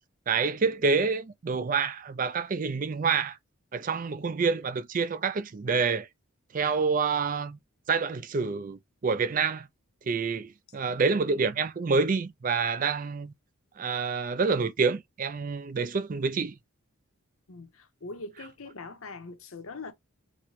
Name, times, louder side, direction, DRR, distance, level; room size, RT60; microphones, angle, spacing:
voice 1, 0.3-3.4 3.7-6.1 6.5-7.6 7.9-9.7 10.1-13.3 13.8-16.5, right 5 dB, 40° right, 0.4 m, -27 dB
voice 2, 17.5-19.9, left 3 dB, 70° left, 0.8 m, -42 dB
4.1 x 2.1 x 3.0 m
head